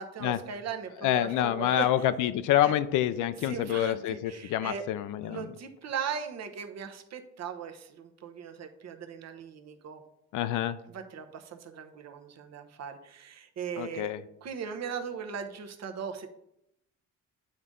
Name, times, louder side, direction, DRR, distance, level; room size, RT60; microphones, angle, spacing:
voice 1, 0.0-2.1 2.6-2.8 3.4-4.9 5.2-10.0 10.9-14.1 14.4-16.3, right 7 dB, 60° right, 6 dB, 0.9 m, -38 dB
voice 2, 1.0-5.5 10.3-10.8 13.8-14.2, left 12 dB, 85° left, 12 dB, 0.5 m, -27 dB
8.6 x 3.9 x 3.7 m, 0.78 s
cardioid pair, 90°, 30 cm